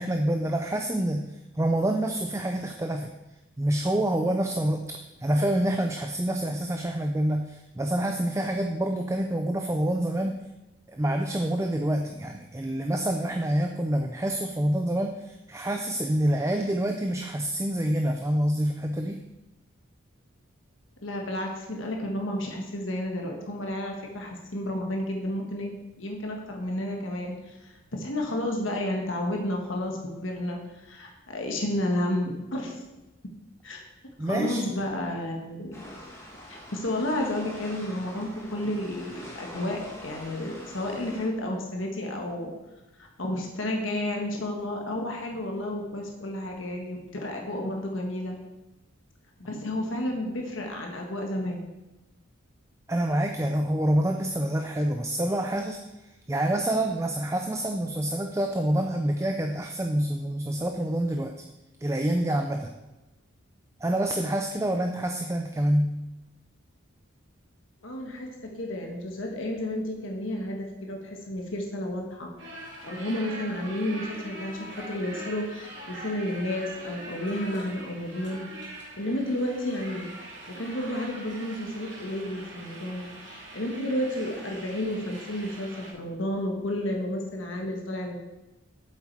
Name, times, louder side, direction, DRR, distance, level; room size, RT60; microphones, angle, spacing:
voice 1, 0.0-3.1 3.6-10.4 10.9-19.2 34.2-34.6 52.9-61.3 61.8-62.7 63.8-66.0, right 1 dB, 15° right, 4 dB, 0.4 m, -27 dB
voice 2, 21.0-32.8 33.6-33.8 34.2-35.7 36.5-42.5 43.0-48.4 49.4-51.7 67.8-72.3 72.8-78.4 79.0-80.1 80.5-88.2, left 1 dB, 75° left, 1 dB, 1.5 m, -31 dB
sound 1, 35.7-41.3, equal, 15° left, 1.8 m, -44 dB
sound 2, 72.4-85.9, right 1 dB, 60° right, 2.6 m, -43 dB
8.3 x 7.4 x 4.6 m, 1.0 s
head